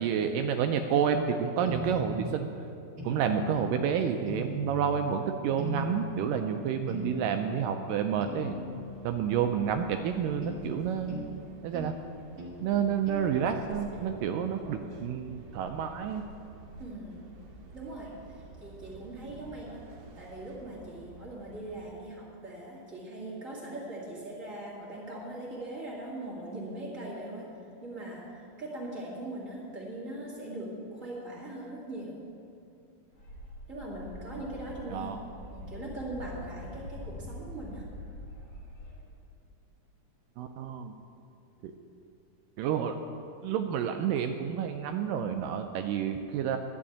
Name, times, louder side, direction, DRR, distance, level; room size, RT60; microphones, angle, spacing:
voice 1, 0.0-2.5 3.0-8.6 9.0-11.2 11.6-11.9 12.6-16.2 34.9-35.2 40.4-41.0 41.6-41.7 42.6-43.0 43.4-46.6, right 7 dB, 80° right, 6 dB, 2.0 m, -29 dB
sound 1, 1.6-2.4 3.0-3.7 4.3-5.0 5.6-6.3 6.9-7.6 8.2-8.9 10.4-10.6 11.1-11.3 11.7-12.0 12.4-12.6 13.1-13.3, equal, 45° right, 1.2 m, -38 dB
sound 2, 8.0-21.9, right 3 dB, 65° right, 2.3 m, -50 dB
voice 2, 16.8-17.2 17.7-19.8 20.2-32.2 33.7-35.1 35.5-37.9, right 1 dB, 30° right, -5 dB, 1.8 m, -40 dB
sound 3, 33.1-39.0, left 1 dB, 40° left, 2.4 m, -44 dB
11.5 x 6.3 x 8.5 m, 2.7 s
omnidirectional pair, 4.1 m